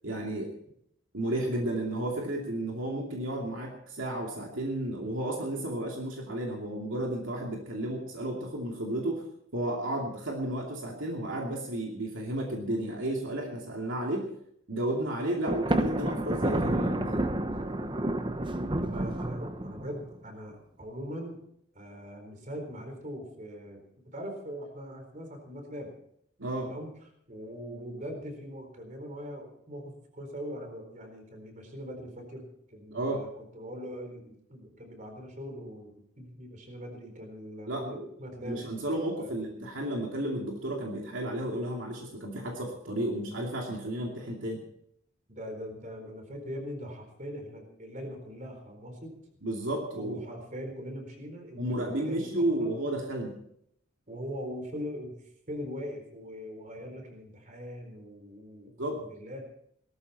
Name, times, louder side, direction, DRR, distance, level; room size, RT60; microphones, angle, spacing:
voice 1, 0.0-0.5 1.1-9.2 9.5-14.3 14.7-17.2 26.4-26.7 32.9-33.3 37.7-38.1 38.4-44.6 49.4-50.2 51.5-53.4 58.8-59.0, right 1 dB, 70° right, -1 dB, 2.6 m, -32 dB
Thunder, 15.5-20.0, right 1 dB, 25° right, 0.8 m, -30 dB
voice 2, 18.8-21.4 21.7-25.9 26.6-26.9 27.3-38.7 39.2-39.4 45.3-49.2 49.9-51.6 52.0-52.7 54.1-55.1 55.5-59.4, equal, 40° right, 4 dB, 4.1 m, -41 dB
18.0 x 14.0 x 4.3 m, 0.71 s
head